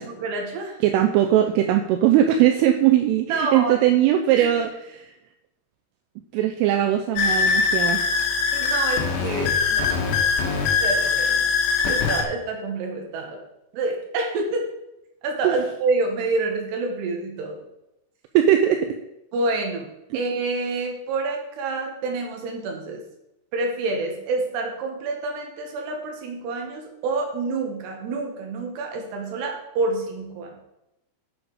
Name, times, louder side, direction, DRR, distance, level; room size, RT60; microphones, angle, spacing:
voice 1, 0.0-0.8 3.3-3.8 4.4-4.5 8.5-9.9 10.8-11.4 11.9-13.4 13.7-14.7 15.2-17.6 19.3-19.9 20.1-23.0 23.5-30.5, right 3 dB, 65° right, 2 dB, 3.3 m, -27 dB
voice 2, 0.8-4.7 5.0-5.1 6.3-8.0 15.4-15.6 18.3-19.0, right 11 dB, 85° right, 5 dB, 3.0 m, -19 dB
sound 1, 7.2-12.2, left 5 dB, 70° left, 3.0 m, -22 dB
8.6 x 7.1 x 4.9 m, 0.89 s
omnidirectional pair, 5.8 m